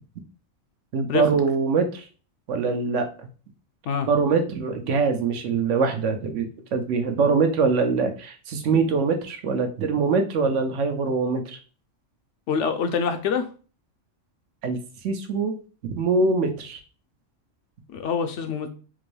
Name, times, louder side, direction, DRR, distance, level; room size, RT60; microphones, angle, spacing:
voice 1, 0.9-2.0 2.5-3.0 4.1-11.4 14.6-14.8 15.0-15.6 15.8-16.8, right 4 dB, 75° right, 6 dB, 1.0 m, -23 dB
voice 2, 12.5-13.4 17.9-18.7, left 6 dB, 70° left, 7 dB, 0.9 m, -25 dB
3.7 x 2.6 x 3.1 m, 0.37 s
omnidirectional pair, 1.3 m